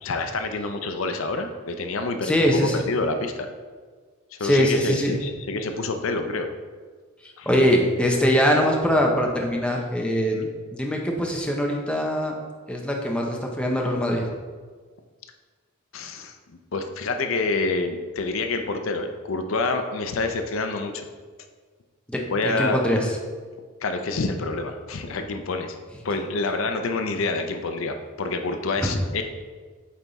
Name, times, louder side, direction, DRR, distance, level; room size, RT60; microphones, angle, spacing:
voice 1, 0.0-2.4 2.7-3.5 4.3-6.5 7.4-7.5 10.3-10.5 15.9-16.3 16.7-21.1 22.3-22.8 23.8-25.7 26.0-29.2, left 3 dB, 70° left, 6 dB, 0.5 m, -27 dB
voice 2, 2.2-2.8 4.4-5.2 7.2-10.4 10.7-12.4 12.7-14.3 22.1-23.2 28.8-28.9, equal, 5° left, 0 dB, 0.7 m, -22 dB
8.6 x 3.5 x 4.0 m, 1.5 s
head